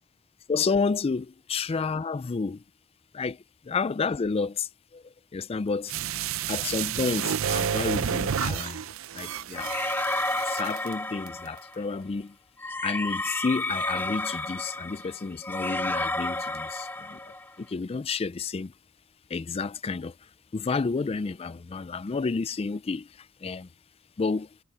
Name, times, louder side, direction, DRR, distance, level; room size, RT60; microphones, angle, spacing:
voice 1, 0.5-2.6 3.1-5.0 5.3-5.9 6.5-8.8 9.1-9.7 10.5-12.4 12.8-17.2 17.6-18.7 19.3-20.1 20.5-23.7 24.2-24.5, left 4 dB, 30° left, 0.4 m, -30 dB
sound 1, 5.9-10.9 11.3-11.4, right 8 dB, 75° right, 0.5 m, -30 dB
sound 2, 9.5-11.8 12.6-17.5, left 2 dB, 10° left, 1.2 m, -31 dB
head